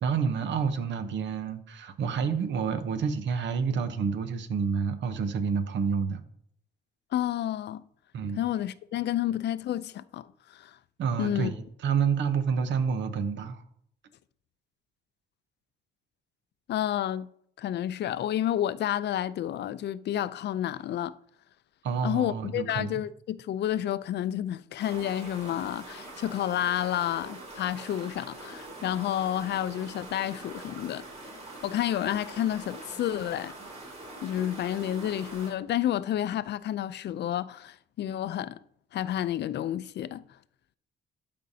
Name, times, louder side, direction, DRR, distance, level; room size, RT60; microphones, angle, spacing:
voice 1, 0.0-6.2 8.1-8.4 11.0-13.6 21.8-23.0, right 6 dB, 70° right, 0.9 m, -29 dB
voice 2, 7.1-7.8 8.4-10.3 10.5-10.8 11.2-11.5 16.7-17.3 17.6-21.1 22.0-31.0 31.6-33.5 34.2-38.6 38.9-40.2, left 11 dB, 60° left, 0.4 m, -30 dB
sound 1, 24.8-35.5, right 2 dB, 35° right, 3.0 m, -44 dB
12.0 x 5.2 x 2.7 m
cardioid pair, 90°, 20 cm